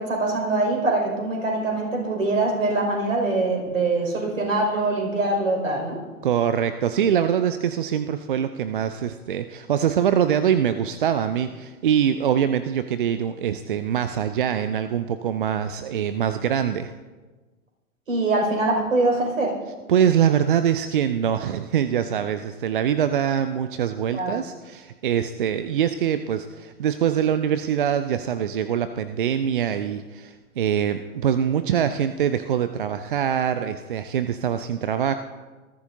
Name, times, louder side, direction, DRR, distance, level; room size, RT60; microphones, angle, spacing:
voice 1, 0.0-6.0 18.1-19.5 24.1-24.4, right 2 dB, 65° right, 0 dB, 5.1 m, -23 dB
voice 2, 6.2-16.9 19.9-35.1, right 9 dB, 40° right, 11 dB, 0.5 m, -23 dB
20.5 x 14.0 x 2.6 m, 1.3 s
figure-of-eight pair, 115°, 42 cm